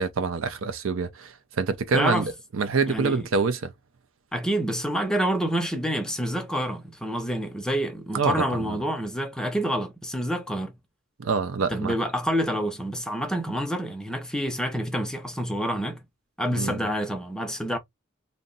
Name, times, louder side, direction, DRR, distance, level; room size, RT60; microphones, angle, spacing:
voice 1, 0.0-3.7 8.1-8.8 11.2-11.9 16.5-16.9, right 4 dB, 85° right, 0.6 m, -26 dB
voice 2, 1.9-2.3 2.9-3.3 4.3-10.8 11.6-16.0 16.4-17.8, equal, 5° left, 0.5 m, -28 dB
2.8 x 2.1 x 3.7 m
head